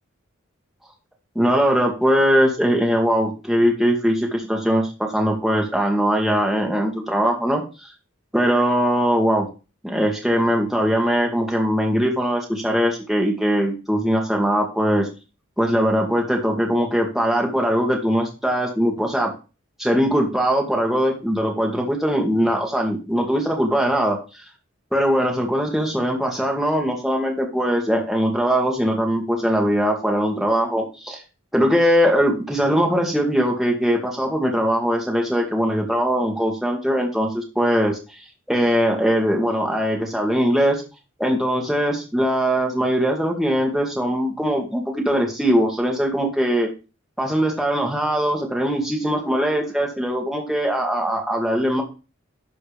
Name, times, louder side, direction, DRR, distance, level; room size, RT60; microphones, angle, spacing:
voice 1, 1.4-7.9 8.3-9.5 9.8-15.1 15.6-19.3 19.8-24.2 24.9-31.2 31.5-38.0 38.5-40.8 41.2-46.7 47.2-51.8, equal, ahead, 0 dB, 1.9 m, -21 dB
11.5 x 4.4 x 5.1 m, 0.32 s
head